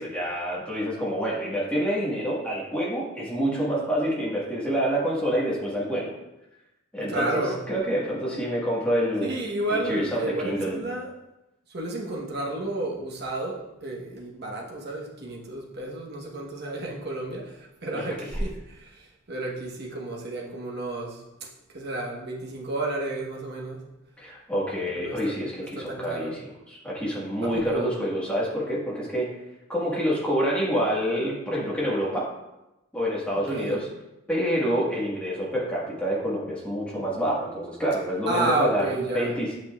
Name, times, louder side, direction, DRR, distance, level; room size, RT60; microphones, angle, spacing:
voice 1, 0.0-6.1 6.9-9.4 9.9-10.8 17.9-18.4 24.2-29.3 29.7-32.3 32.9-33.9 34.3-39.6, equal, 5° left, -6 dB, 1.4 m, -27 dB
voice 2, 7.1-7.6 9.3-11.1 11.7-19.0 19.3-21.2 21.7-23.8 24.9-25.4 25.7-26.3 27.4-27.9 33.5-33.8 38.3-39.4, right 2 dB, 50° right, -2 dB, 1.1 m, -31 dB
8.3 x 5.5 x 2.3 m, 0.95 s
head